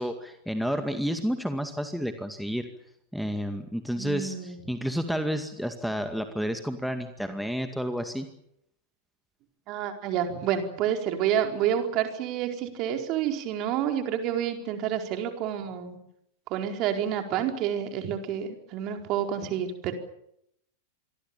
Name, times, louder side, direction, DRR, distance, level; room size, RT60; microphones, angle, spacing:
voice 1, 0.0-2.7 3.1-8.3, equal, ahead, 7 dB, 2.2 m, -30 dB
voice 2, 3.9-4.6 9.7-16.0 16.5-19.9, right 9 dB, 40° right, 5 dB, 4.5 m, -29 dB
27.5 x 23.0 x 7.2 m, 0.76 s
figure-of-eight pair, 90°, 0 cm